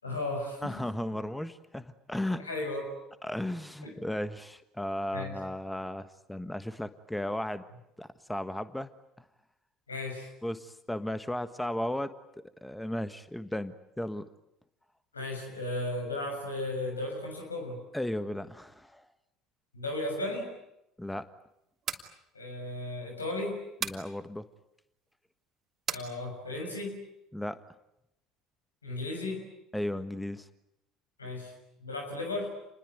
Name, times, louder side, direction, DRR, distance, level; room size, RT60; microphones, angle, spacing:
voice 1, 0.0-0.7 2.4-3.0 3.8-3.9 5.1-5.3 9.9-10.3 15.1-17.8 19.7-20.5 22.3-23.6 25.9-27.0 28.8-29.5 31.2-31.5 31.8-32.5, left 2 dB, 85° left, 2 dB, 6.7 m, -35 dB
voice 2, 0.6-2.4 3.2-7.6 8.0-8.9 10.4-12.1 12.6-14.2 17.9-19.1 21.0-21.3 23.8-24.5 27.3-27.6 29.7-30.5, left 1 dB, 5° left, 12 dB, 1.4 m, -35 dB
sound 1, 21.7-22.1 23.8-24.1 25.9-26.1, right 7 dB, 40° right, 2.9 m, -34 dB
29.0 x 21.0 x 9.6 m, 0.84 s
figure-of-eight pair, 60°, 0 cm